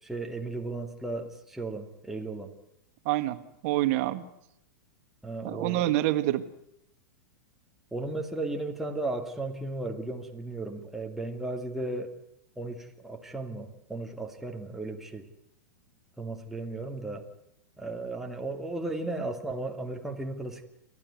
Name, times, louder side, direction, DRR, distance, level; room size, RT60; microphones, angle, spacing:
voice 1, 0.0-2.5 5.2-5.9 7.9-12.1 12.6-15.3 16.2-17.2 17.8-20.6, right 2 dB, 5° right, 2 dB, 2.1 m, -35 dB
voice 2, 3.0-4.2 5.4-6.4, right 15 dB, 50° right, 11 dB, 1.7 m, -27 dB
29.5 x 13.0 x 9.5 m, 0.80 s
figure-of-eight pair, 100°, 10 cm